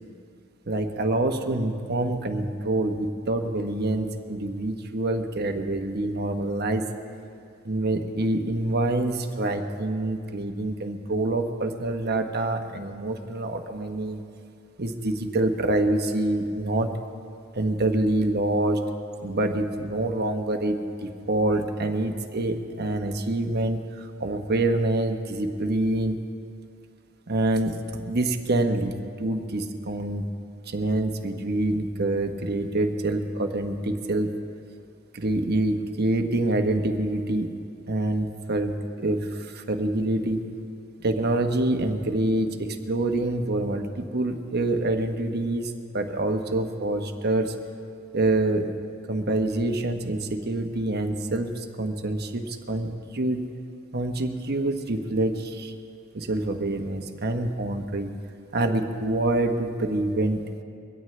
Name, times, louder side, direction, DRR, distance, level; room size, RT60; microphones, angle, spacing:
voice 1, 0.7-6.9 7.6-14.2 14.8-16.9 17.5-18.8 19.2-26.2 27.3-28.9 29.2-30.3 30.7-34.3 35.1-37.5 37.9-40.4 41.0-47.5 48.1-48.7 49.1-53.5 53.9-55.7 56.1-58.1 58.5-60.4, right 2 dB, 50° right, 5 dB, 1.1 m, -26 dB
23.0 x 17.0 x 3.3 m, 2.4 s
head